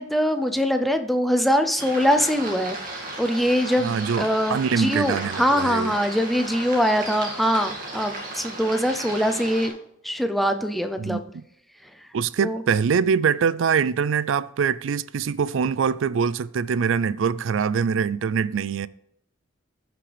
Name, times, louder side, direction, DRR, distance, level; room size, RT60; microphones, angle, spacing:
voice 1, 0.0-2.8 3.2-9.7 10.0-11.2 12.4-12.6, equal, ahead, 0.5 m, -23 dB
sound 1, 1.8-9.7, right 2 dB, 45° right, 2.2 m, -35 dB
voice 2, 3.8-5.9 11.0-11.4 12.1-18.9, right 6 dB, 70° right, 0.4 m, -24 dB
15.0 x 6.0 x 3.4 m
head